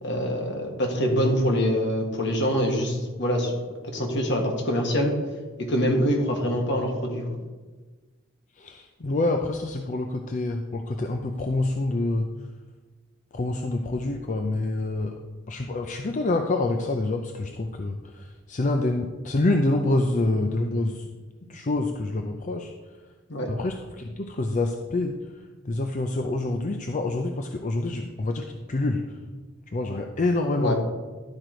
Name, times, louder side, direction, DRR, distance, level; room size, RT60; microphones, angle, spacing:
voice 1, 0.0-3.5 3.9-5.2 5.6-7.4 23.3-23.5 30.6-30.8, equal, 60° left, 2 dB, 1.6 m, -25 dB
voice 2, 8.6-12.3 13.3-15.2 15.5-21.0 21.5-22.7 23.5-25.2 25.6-29.2 29.7-30.8, left 2 dB, 40° left, 4 dB, 0.5 m, -27 dB
11.5 x 4.6 x 5.1 m, 1.3 s
head